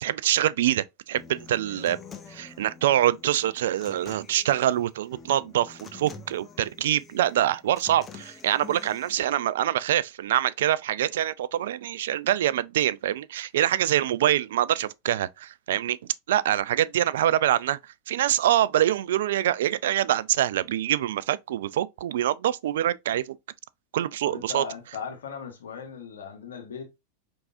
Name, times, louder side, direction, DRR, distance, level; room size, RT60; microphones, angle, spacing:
voice 1, 0.0-2.0 2.3-16.0 16.3-17.8 18.1-23.4 23.9-24.6, right 12 dB, 75° right, 0.3 m, -25 dB
Human voice / Acoustic guitar, 1.1-9.1, left 4 dB, 25° left, 0.8 m, -47 dB
voice 2, 24.2-26.9, left 6 dB, 80° left, 1.1 m, -38 dB
4.7 x 3.5 x 2.5 m
hypercardioid pair, 100°, 0 cm